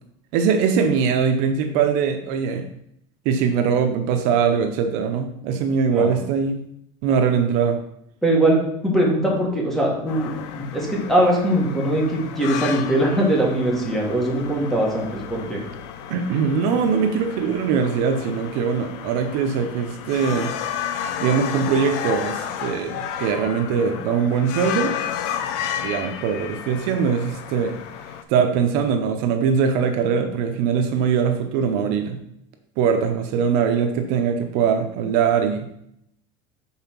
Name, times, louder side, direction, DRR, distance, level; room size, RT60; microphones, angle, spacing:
voice 1, 0.3-2.7 3.2-6.6 7.0-7.8 16.1-20.5 21.2-25.0 25.8-27.7 28.3-32.2 32.8-35.7, right 6 dB, 55° right, 6 dB, 0.7 m, -21 dB
voice 2, 8.2-15.6, right 1 dB, ahead, -3 dB, 1.4 m, -21 dB
sound 1, 10.1-28.2, left 9 dB, 65° left, 0.6 m, -32 dB
5.6 x 3.9 x 5.8 m, 0.75 s
cardioid pair, 165°, 15 cm